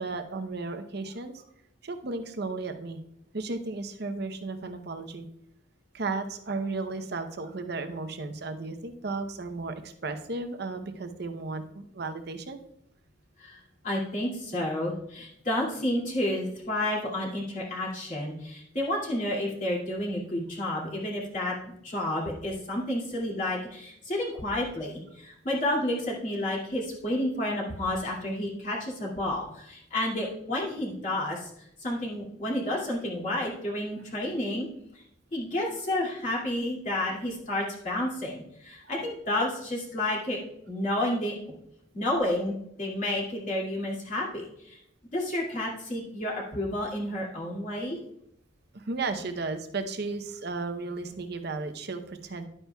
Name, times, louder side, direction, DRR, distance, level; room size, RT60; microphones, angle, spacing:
voice 1, 0.0-1.4 1.8-3.0 3.3-5.2 5.9-12.6 48.7-52.5, right 3 dB, 60° right, 7 dB, 0.8 m, -34 dB
voice 2, 13.4-34.7 35.3-40.4 40.7-41.3 41.9-44.8 45.1-48.0, left 1 dB, 45° left, -4 dB, 2.4 m, -30 dB
11.0 x 8.9 x 2.3 m, 0.75 s
head